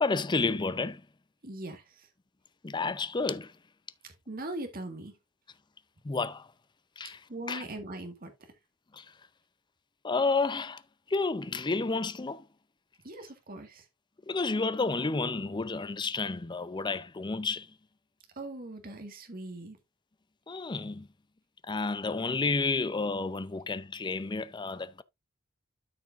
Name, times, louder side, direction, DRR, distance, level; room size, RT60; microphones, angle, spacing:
voice 1, 0.0-1.0 2.6-3.5 6.0-6.5 7.0-7.2 7.5-7.6 8.9-9.1 10.0-10.8 11.1-12.5 14.3-17.7 20.5-21.1 21.7-25.0, left 3 dB, 20° left, 0.5 m, -30 dB
voice 2, 1.4-2.1 4.0-5.2 7.3-8.3 13.0-13.9 18.4-19.8, right 2 dB, 45° right, 1.8 m, -40 dB
13.0 x 5.0 x 2.6 m
head